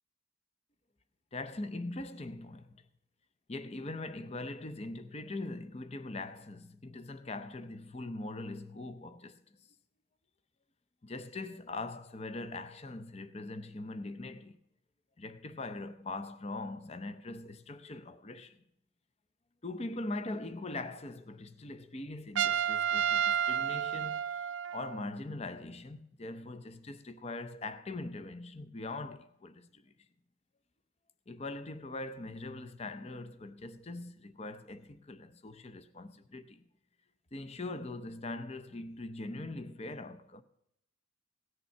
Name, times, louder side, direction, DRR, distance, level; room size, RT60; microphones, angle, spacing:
voice 1, 1.3-2.8 3.5-9.4 11.0-14.6 15.2-18.6 19.6-29.9 31.3-36.6 37.3-40.4, left 2 dB, 30° left, 0.6 m, -42 dB
Trumpet, 22.4-25.0, right 9 dB, 60° right, 0.4 m, -31 dB
17.0 x 6.7 x 5.5 m
head